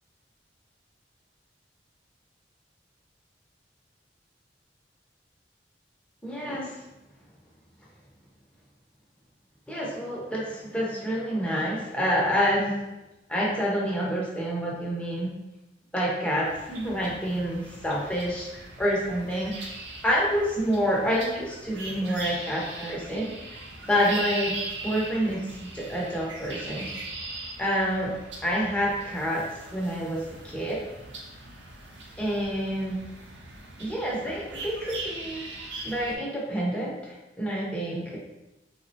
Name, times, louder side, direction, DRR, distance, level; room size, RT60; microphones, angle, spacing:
voice 1, 6.2-6.7 9.7-12.8 13.3-15.3 15.9-19.7 20.0-23.6 23.9-24.6 24.8-26.9 27.6-28.1 28.4-29.5 29.7-30.8 32.2-33.0 33.8-35.4 35.8-38.2, equal, 5° left, -5 dB, 0.6 m, -28 dB
sound 1, 16.4-36.2, right 2 dB, 90° right, 0.5 m, -40 dB
3.5 x 2.0 x 2.6 m, 0.98 s
head